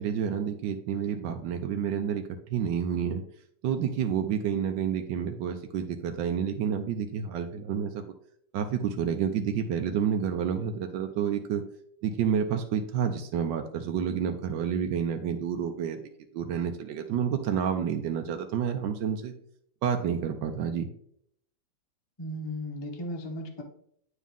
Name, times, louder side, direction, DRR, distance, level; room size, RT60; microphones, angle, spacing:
voice 1, 0.0-2.2 2.5-3.2 3.6-8.0 8.5-11.6 12.0-16.0 16.3-19.3 19.8-20.9, right 8 dB, 80° right, 4 dB, 1.3 m, -29 dB
voice 2, 22.2-23.6, left 1 dB, 25° left, 1 dB, 0.6 m, -36 dB
9.2 x 3.6 x 3.5 m, 0.68 s
omnidirectional pair, 2.0 m